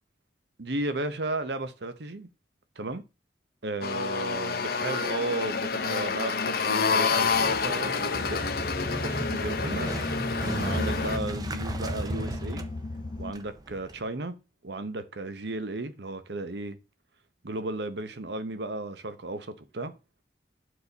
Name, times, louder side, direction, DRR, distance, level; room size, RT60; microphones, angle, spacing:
voice 1, 0.6-2.3 2.8-3.0 3.6-8.5 8.9-9.9 10.3-12.7 13.2-14.4 14.6-16.8 17.4-19.9, right 2 dB, 70° right, 0.9 m, -34 dB
sound 1, 3.8-11.2, left 5 dB, 55° left, 0.7 m, -28 dB
Motorcycle, 7.2-14.0, right 1 dB, 20° right, 0.7 m, -36 dB
sound 2, 8.1-13.3, left 2 dB, 25° left, 0.3 m, -36 dB
9.7 x 4.8 x 4.0 m
head